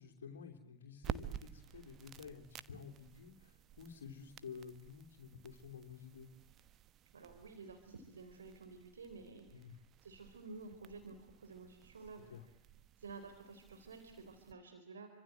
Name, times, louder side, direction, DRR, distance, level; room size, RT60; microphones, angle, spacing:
voice 1, 0.0-6.3 9.5-9.8 12.3-12.5, left 6 dB, 65° left, 3 dB, 3.2 m, -52 dB
sound 1, 1.0-14.5, right 10 dB, 30° right, 1.3 m, -52 dB
voice 2, 7.1-9.7 10.0-12.3 13.0-15.1, right 4 dB, 70° right, 7 dB, 4.0 m, -52 dB
29.5 x 25.5 x 7.7 m, 0.77 s
figure-of-eight pair, 90°, 0 cm